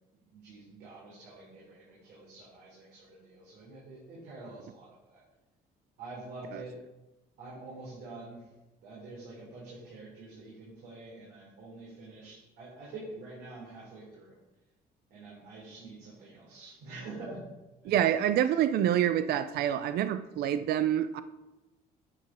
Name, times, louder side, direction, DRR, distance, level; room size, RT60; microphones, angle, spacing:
voice 1, 0.3-5.2 6.0-6.7 7.4-8.5 8.8-14.4 15.1-17.4 17.8-18.0, right 2 dB, 85° right, -6 dB, 3.7 m, -46 dB
voice 2, 17.8-21.2, right 10 dB, 70° right, 12 dB, 0.5 m, -27 dB
9.7 x 6.6 x 5.0 m, 1.1 s
cardioid pair, 110°, 17 cm